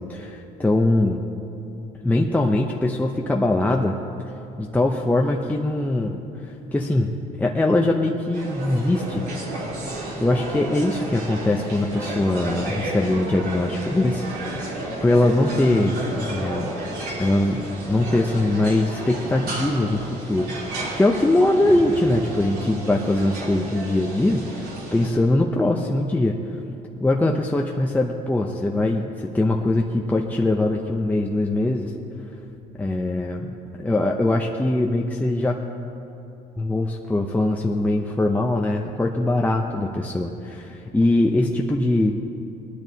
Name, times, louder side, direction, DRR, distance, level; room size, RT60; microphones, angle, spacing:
voice 1, 0.1-1.2 2.0-4.0 4.6-9.3 10.2-16.7 17.2-17.6 17.9-26.6 27.0-31.9 32.8-35.6 36.6-42.1, left 2 dB, 10° left, 1 dB, 0.6 m, -22 dB
sound 1, 8.3-25.1, right 1 dB, 70° right, 3.4 m, -32 dB
19.5 x 12.0 x 2.8 m, 2.9 s
cardioid pair, 110°, 17 cm